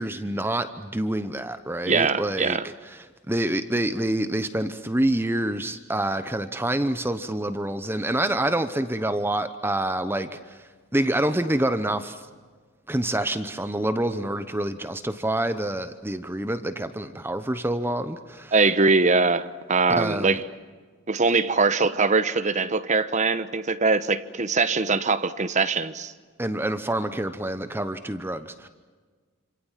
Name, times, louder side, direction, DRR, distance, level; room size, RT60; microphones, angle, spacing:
voice 1, 0.0-2.6 2.9-12.3 12.9-18.5 20.0-20.4 26.4-28.7, right 1 dB, 10° right, 0.9 m, -27 dB
voice 2, 1.9-2.7 18.5-20.5 21.1-26.1, right 4 dB, 35° right, 1.1 m, -22 dB
28.0 x 26.5 x 7.4 m
head